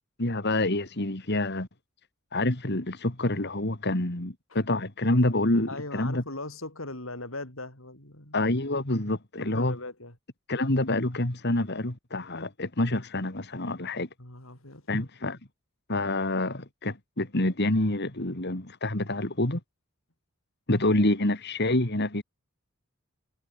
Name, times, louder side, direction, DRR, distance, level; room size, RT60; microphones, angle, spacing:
voice 1, 0.2-1.7 2.3-6.2 8.3-9.8 10.5-14.1 14.9-15.4 15.9-19.6 20.7-22.2, left 1 dB, 55° left, 2.9 m, -27 dB
voice 2, 5.7-8.4 9.4-10.2 14.2-14.9, left 2 dB, 75° left, 6.9 m, -39 dB
head